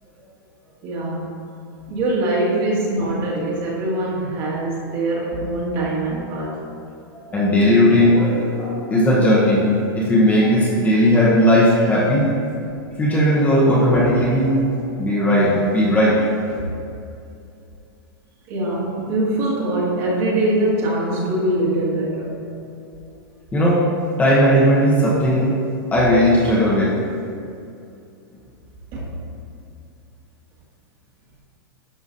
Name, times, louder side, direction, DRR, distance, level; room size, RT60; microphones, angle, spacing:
voice 1, 0.8-1.5 1.9-6.7 16.5-16.7 18.5-22.4 28.9-29.2, right 1 dB, 35° right, -5 dB, 1.9 m, -23 dB
voice 2, 7.2-12.2 13.0-14.7 15.0-16.2 23.5-23.8 24.2-25.6 25.9-26.9, equal, 10° left, -6 dB, 1.0 m, -16 dB
11.0 x 6.8 x 2.7 m, 2.6 s
supercardioid pair, 155°, 13 cm